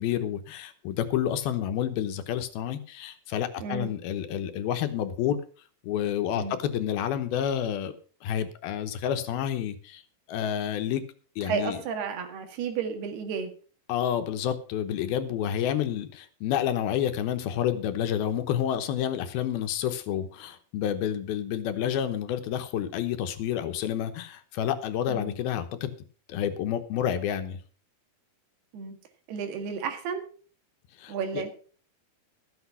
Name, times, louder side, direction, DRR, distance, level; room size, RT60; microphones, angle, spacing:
voice 1, 0.0-5.4 5.8-7.9 8.2-10.0 10.3-11.0 11.4-11.8 13.9-25.9 26.3-27.6 31.0-31.4, left 10 dB, 80° left, 9 dB, 2.8 m, -29 dB
voice 2, 3.6-3.9 6.4-6.6 11.4-13.5 25.1-25.3 28.7-29.0 29.3-30.2 31.1-31.5, right 6 dB, 85° right, 6 dB, 3.9 m, -32 dB
14.0 x 8.3 x 5.6 m, 0.40 s
omnidirectional pair, 4.5 m